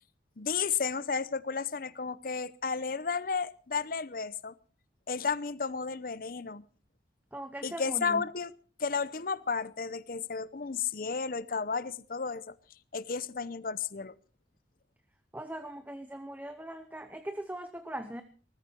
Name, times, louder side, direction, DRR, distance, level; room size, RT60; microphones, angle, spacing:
voice 1, 0.4-4.5 5.1-6.6 7.6-8.5 8.8-12.5 12.9-14.1, left 5 dB, 55° left, 0.7 m, -33 dB
voice 2, 7.3-8.2 15.3-18.2, right 1 dB, 10° right, 0.9 m, -40 dB
19.5 x 14.0 x 4.5 m
head